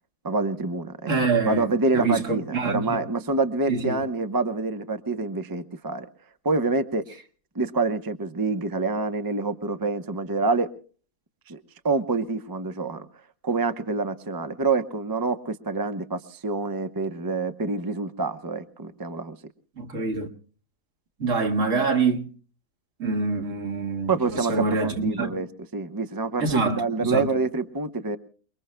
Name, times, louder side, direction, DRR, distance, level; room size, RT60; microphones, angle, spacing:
voice 1, 0.2-1.1 1.5-6.1 6.4-7.1 7.5-10.7 11.5-11.6 11.8-13.1 13.4-19.4 24.1-25.5 25.7-28.2, right 3 dB, 20° right, 0.7 m, -26 dB
voice 2, 1.1-1.7 1.9-3.0 3.7-4.0 19.8-20.3 21.2-22.3 23.0-25.4 26.4-27.3, right 4 dB, 60° right, 2.2 m, -25 dB
29.0 x 21.5 x 2.2 m
omnidirectional pair, 1.5 m